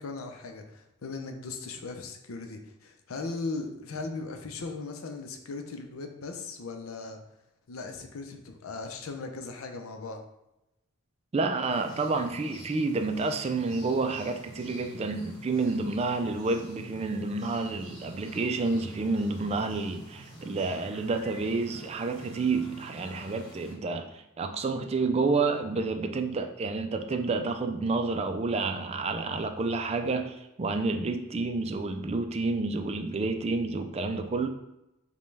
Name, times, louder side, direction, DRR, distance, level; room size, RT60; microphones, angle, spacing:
voice 1, 0.0-7.2 7.7-10.2, left 3 dB, 80° left, 5 dB, 0.6 m, -38 dB
voice 2, 11.3-34.5, right 3 dB, 30° right, 6 dB, 0.3 m, -29 dB
sound 1, 11.7-23.7, right 1 dB, 60° left, 1.4 m, -48 dB
5.2 x 2.3 x 3.3 m, 0.90 s
head